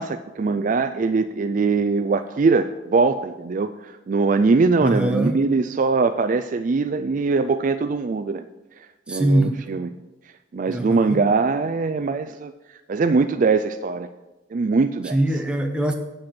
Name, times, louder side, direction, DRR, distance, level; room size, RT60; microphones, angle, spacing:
voice 1, 0.0-8.4 9.1-9.9 10.5-12.5 12.9-14.1 14.5-15.2, right 4 dB, 40° right, 10 dB, 0.3 m, -21 dB
voice 2, 4.8-5.4 9.1-9.6 10.7-11.2 15.1-15.9, right 1 dB, 5° right, 3 dB, 0.9 m, -22 dB
8.7 x 7.7 x 6.0 m, 1.0 s
head